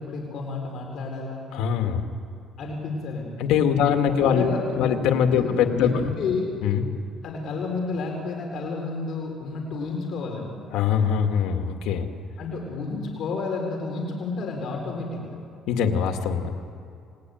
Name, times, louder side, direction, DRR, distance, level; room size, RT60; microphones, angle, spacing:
voice 1, 0.0-1.5 2.6-3.4 3.7-5.0 5.3-6.5 7.2-10.6 12.4-15.4, left 3 dB, 55° left, 1 dB, 4.5 m, -31 dB
voice 2, 1.5-2.0 3.4-4.5 4.8-5.9 6.6-6.8 10.7-12.1 15.7-16.5, left 8 dB, 85° left, 5 dB, 2.1 m, -22 dB
28.0 x 20.5 x 9.3 m, 2.4 s
cardioid pair, 130°, 0 cm